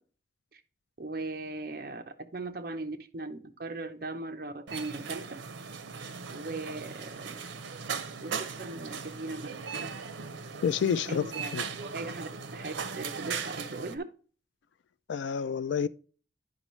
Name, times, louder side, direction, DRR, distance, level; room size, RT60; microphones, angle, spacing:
voice 1, 1.0-5.3 6.3-7.5 8.2-9.5 10.8-11.5 11.9-14.0, right 2 dB, 50° right, 0.7 m, -39 dB
sound 1, 4.7-14.0, right 5 dB, 90° right, 0.6 m, -38 dB
voice 2, 10.6-11.2 11.5-11.7 15.1-15.9, left 7 dB, 80° left, 0.3 m, -28 dB
9.6 x 5.2 x 3.0 m
head